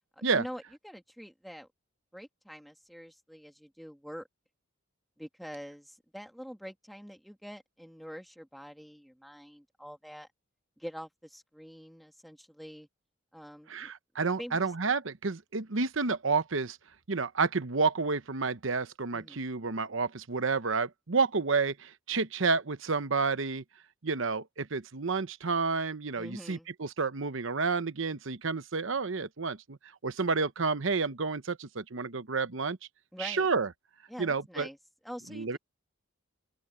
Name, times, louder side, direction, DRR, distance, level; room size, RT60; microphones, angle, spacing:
voice 1, 0.2-1.7 2.1-4.3 5.2-10.3 10.8-12.9 13.3-13.9 14.4-14.7 19.1-19.5 26.1-26.7 33.1-33.5 34.1-34.8 35.0-35.6, equal, ahead, 2.1 m, -45 dB
voice 2, 13.7-16.8 17.1-23.6 24.0-29.8 30.0-32.8 33.2-33.7 34.2-34.7 35.3-35.6, right 4 dB, 65° right, 0.9 m, -30 dB
open air
head